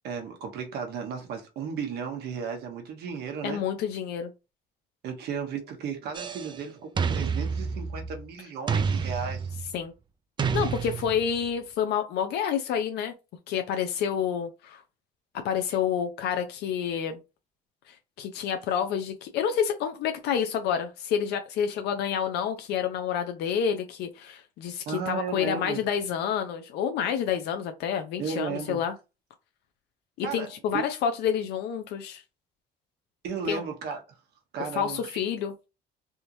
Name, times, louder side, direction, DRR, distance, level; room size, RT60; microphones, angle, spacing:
voice 1, 0.0-3.6 5.0-9.5 24.9-25.8 28.2-28.8 30.2-30.8 33.2-34.0 34.5-35.2, right 6 dB, 75° right, 1.1 m, -34 dB
voice 2, 3.4-4.3 9.7-9.9 10.5-13.1 13.5-14.8 15.4-17.2 18.2-28.9 30.2-32.2 33.5-33.6 34.7-35.5, left 8 dB, 80° left, 0.5 m, -28 dB
sound 1, 6.1-6.6 7.0-8.3 8.7-9.8 10.4-11.4, right 6 dB, 25° right, 0.4 m, -29 dB
3.4 x 2.9 x 2.7 m
cardioid pair, 110°, 17 cm